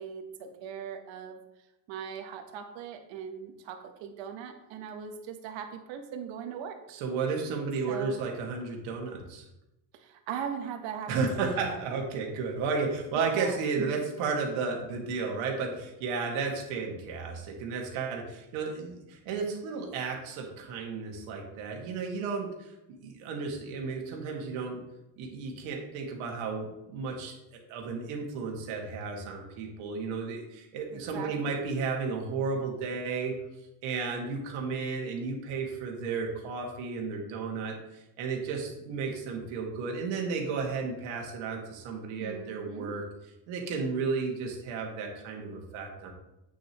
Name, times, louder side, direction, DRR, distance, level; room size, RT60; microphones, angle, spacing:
voice 1, 0.0-1.4 1.9-6.8 7.9-8.2 9.9-11.8 13.1-13.6 30.9-31.6 42.2-42.9, right 7 dB, 65° right, 6 dB, 1.2 m, -39 dB
voice 2, 6.9-9.5 11.1-22.7 23.0-24.8 25.2-33.3 33.8-43.0 43.5-46.1, right 4 dB, 85° right, 1 dB, 2.0 m, -33 dB
8.6 x 6.5 x 3.0 m, 0.91 s
cardioid pair, 150°, 47 cm